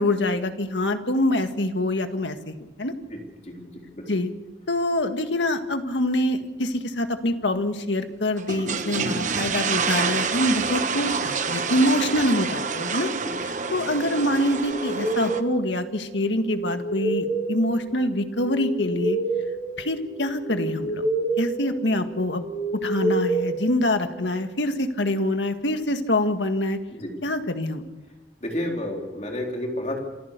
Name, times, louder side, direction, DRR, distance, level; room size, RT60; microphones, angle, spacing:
voice 1, 0.0-2.9 4.1-4.3 4.7-13.1 13.4-19.2 19.8-21.1 21.4-22.5 22.7-26.8 27.2-27.8, left 1 dB, 90° left, 7 dB, 1.8 m, -25 dB
voice 2, 3.1-4.1 13.2-13.3 26.9-27.2 28.4-30.0, left 1 dB, 40° left, 0 dB, 4.0 m, -31 dB
sound 1, 8.4-15.4, right 5 dB, 45° right, 1.2 m, -27 dB
sound 2, 14.6-24.3, right 2 dB, 65° left, 5.5 m, -29 dB
27.5 x 14.5 x 6.8 m, 1.1 s
head